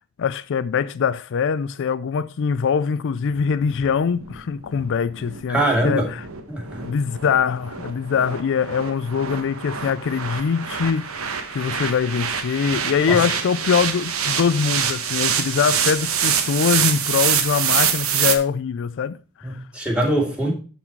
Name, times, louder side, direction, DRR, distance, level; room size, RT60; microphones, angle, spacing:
voice 1, 0.2-6.2 6.8-19.6, left 6 dB, 60° left, 0.4 m, -23 dB
sound 1, 3.3-18.4, right 8 dB, 75° right, 1.1 m, -26 dB
voice 2, 5.5-6.1 6.5-7.0 13.1-13.2 19.4-20.5, right 1 dB, 5° right, 2.3 m, -23 dB
11.5 x 4.2 x 4.5 m
head